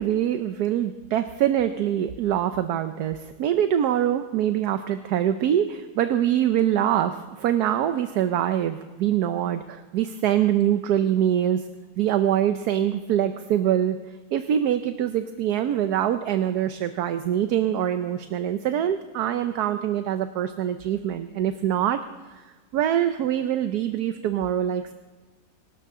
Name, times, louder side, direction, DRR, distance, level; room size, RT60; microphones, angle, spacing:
voice 1, 0.0-11.6 12.0-14.0 14.3-22.0 22.4-22.5 22.7-24.9, right 10 dB, 75° right, 9 dB, 1.2 m, -24 dB
24.0 x 13.0 x 3.7 m, 1.3 s
omnidirectional pair, 1.7 m